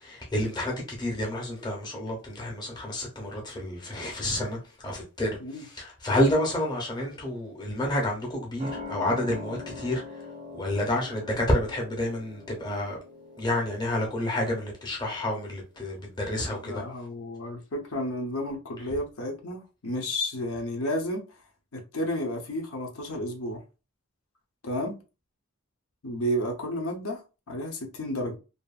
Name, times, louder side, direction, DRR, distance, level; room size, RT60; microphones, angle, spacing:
voice 1, 0.0-10.2 10.5-13.0 13.4-16.8, left 1 dB, 20° left, 0.7 m, -29 dB
sound 1, 8.6-15.7 16.0-16.1, left 3 dB, 30° right, 0.4 m, -43 dB
voice 2, 16.5-21.2 21.7-23.6 24.6-25.0 26.0-27.2 27.5-28.4, equal, 80° left, 0.8 m, -32 dB
2.7 x 2.4 x 2.4 m
head